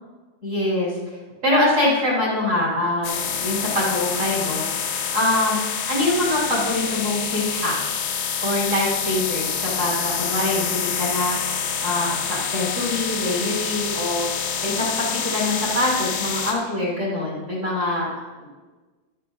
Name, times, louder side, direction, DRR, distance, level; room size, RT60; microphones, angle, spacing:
voice 1, 0.4-0.9 1.4-8.1 8.4-11.5 11.8-14.3 14.6-18.5, left 1 dB, 25° right, -7 dB, 3.6 m, -24 dB
sound 1, 3.0-16.5, left 7 dB, 75° left, 3.7 m, -27 dB
15.0 x 13.0 x 2.6 m, 1.3 s
omnidirectional pair, 5.7 m